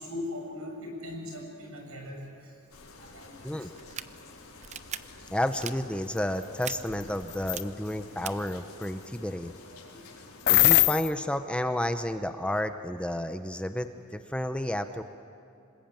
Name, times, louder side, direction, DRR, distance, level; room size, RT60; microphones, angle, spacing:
voice 1, 0.0-2.3 3.0-3.4 9.7-10.1, left 1 dB, 75° right, 2 dB, 6.5 m, -39 dB
sound 1, 2.7-10.8, left 3 dB, 80° left, 4.3 m, -50 dB
sound 2, 3.8-4.0 4.6-5.0 5.5-5.7 6.6-6.7 7.4-7.6 8.2-8.3, right 9 dB, 30° right, 0.6 m, -37 dB
voice 2, 5.3-9.5 10.5-15.0, left 1 dB, 5° left, 8 dB, 0.7 m, -31 dB
sound 3, 6.6-6.8 7.3-7.6 10.5-11.1, left 16 dB, 50° left, 0.5 m, -20 dB
26.5 x 20.5 x 9.0 m, 2.6 s
head